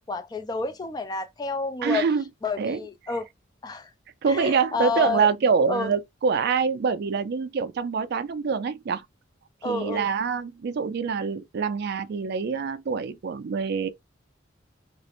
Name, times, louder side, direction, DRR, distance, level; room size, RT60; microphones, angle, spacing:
voice 1, 0.1-2.1 2.4-3.3 3.6-3.9 4.3-5.3 5.7-5.9 9.6-10.0, left 4 dB, 20° left, 0.3 m, -29 dB
voice 2, 1.8-2.2 2.6-2.8 4.2-9.0 9.6-13.9, right 5 dB, 55° right, 0.3 m, -25 dB
2.4 x 2.0 x 2.8 m
head